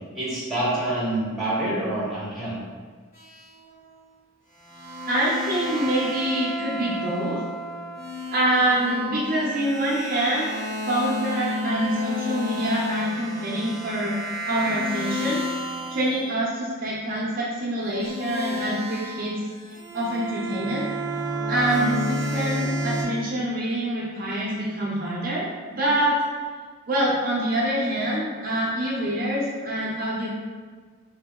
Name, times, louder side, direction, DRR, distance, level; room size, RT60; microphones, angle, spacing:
voice 1, 0.1-2.6, right 1 dB, ahead, -9 dB, 0.9 m, -26 dB
sound 1, 3.1-3.8 4.7-16.2 17.9-23.0, equal, 40° left, 1.0 m, -31 dB
voice 2, 5.1-7.4 8.3-14.1 14.5-15.4 15.9-19.4 19.9-20.8 21.5-26.2 26.9-30.3, right 1 dB, 40° right, -5 dB, 0.6 m, -26 dB
2.9 x 2.7 x 3.5 m, 1.5 s
head